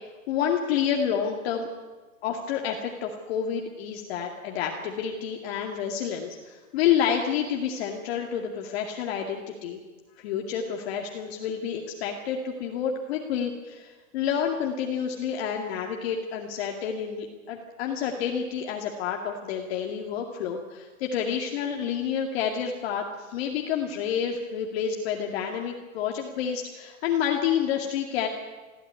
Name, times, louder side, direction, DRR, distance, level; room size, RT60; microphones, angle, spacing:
voice 1, 0.3-1.7 2.2-9.8 10.2-28.3, left 8 dB, 45° left, 1 dB, 2.4 m, -29 dB
21.5 x 15.0 x 9.7 m, 1.3 s
hypercardioid pair, 155°, 43 cm